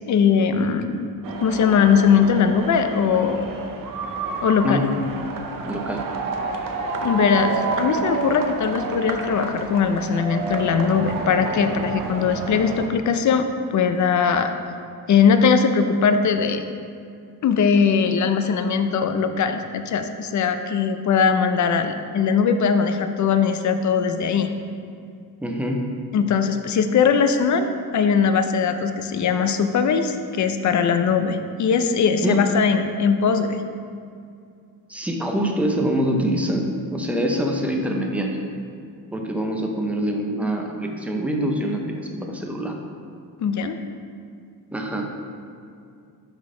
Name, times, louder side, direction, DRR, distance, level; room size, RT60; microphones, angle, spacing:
voice 1, 0.1-1.1 1.4-3.4 4.4-4.8 7.0-14.5 15.1-16.6 17.4-24.5 26.1-27.7 27.9-33.6 43.4-43.8, left 6 dB, 50° left, 8 dB, 0.5 m, -20 dB
sound 1, 1.2-12.9, right 4 dB, 60° right, 0.8 m, -29 dB
voice 2, 5.7-6.0 25.4-25.8 32.2-32.4 34.9-38.4 39.1-42.7 44.7-45.1, equal, 5° right, 1 dB, 0.6 m, -25 dB
11.0 x 3.8 x 3.7 m, 2.4 s
wide cardioid pair, 150°, 38 cm